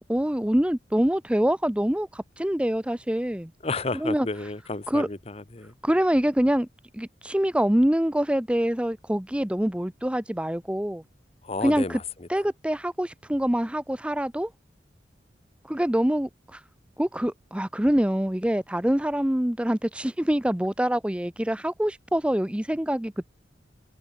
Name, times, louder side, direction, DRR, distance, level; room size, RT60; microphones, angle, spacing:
voice 1, 0.0-3.5 4.0-4.3 4.9-5.1 5.8-6.7 6.9-11.0 11.6-12.0 12.3-14.5 15.7-16.6 17.0-23.2, equal, 5° right, 0.6 m, -25 dB
voice 2, 3.6-5.7 11.4-12.3, left 3 dB, 35° left, 1.0 m, -32 dB
head